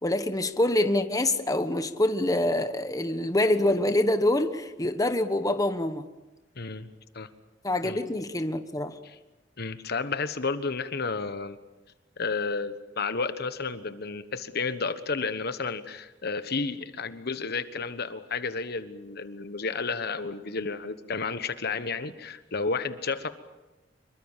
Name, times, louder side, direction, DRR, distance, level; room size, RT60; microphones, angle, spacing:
voice 1, 0.0-6.1 7.6-8.9, left 1 dB, 20° left, 9 dB, 1.2 m, -25 dB
voice 2, 6.6-6.9 7.1-7.3 7.8-8.0 9.0-9.2 9.6-11.6 12.2-23.3, left 4 dB, 55° left, 11 dB, 1.3 m, -31 dB
26.5 x 23.0 x 7.4 m, 1.1 s
head